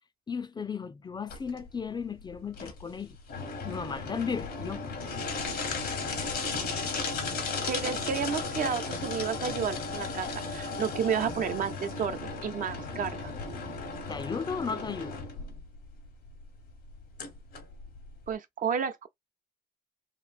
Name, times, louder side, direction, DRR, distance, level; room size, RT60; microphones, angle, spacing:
voice 1, 0.3-3.2 3.6-4.8 14.1-15.2, left 6 dB, 30° left, 0.4 m, -35 dB
sound 1, 1.3-18.3, left 4 dB, 85° left, 1.1 m, -35 dB
voice 2, 7.7-13.3 18.3-19.1, right 7 dB, 60° right, 0.6 m, -31 dB
3.0 x 2.6 x 2.4 m
supercardioid pair, 65°, 16 cm